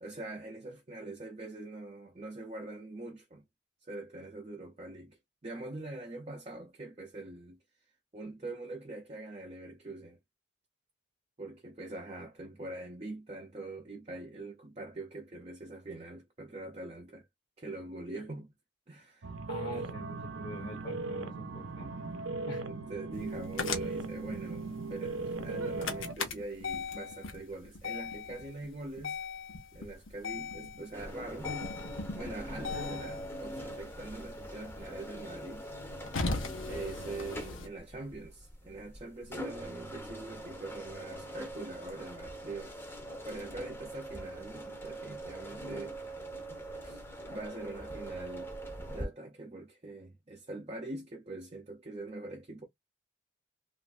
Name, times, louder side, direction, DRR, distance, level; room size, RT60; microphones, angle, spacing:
voice 1, 0.0-3.4 3.8-7.6 8.1-10.2 11.4-17.3 17.6-18.5 18.9-19.3 19.7-19.9 22.6-29.2 29.7-31.5 32.1-35.7 36.7-42.9 43.2-46.0 46.8-48.5 48.9-52.6, right 2 dB, 30° right, 0.5 m, -43 dB
sound 1, 19.2-26.1, right 3 dB, 85° right, 0.6 m, -38 dB
voice 2, 19.5-22.0 22.4-22.7, left 1 dB, 45° left, 0.8 m, -44 dB
sound 2, 23.2-37.7, left 4 dB, 85° left, 0.8 m, -39 dB
sound 3, 30.9-49.1, right 1 dB, 10° left, 0.7 m, -43 dB
3.1 x 2.4 x 2.4 m
head